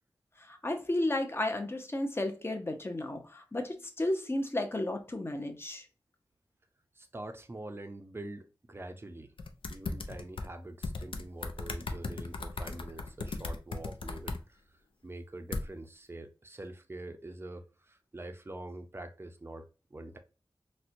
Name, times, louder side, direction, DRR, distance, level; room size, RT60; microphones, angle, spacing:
voice 1, 0.4-5.9, left 1 dB, 30° left, 0.6 m, -33 dB
voice 2, 6.9-9.3 9.7-14.6 15.0-20.2, right 1 dB, 30° right, 0.5 m, -45 dB
sound 1, 9.4-10.5 10.8-14.4 15.5-15.6, left 3 dB, 90° left, 0.5 m, -36 dB
4.2 x 2.1 x 2.5 m
wide cardioid pair, 100°, 9 cm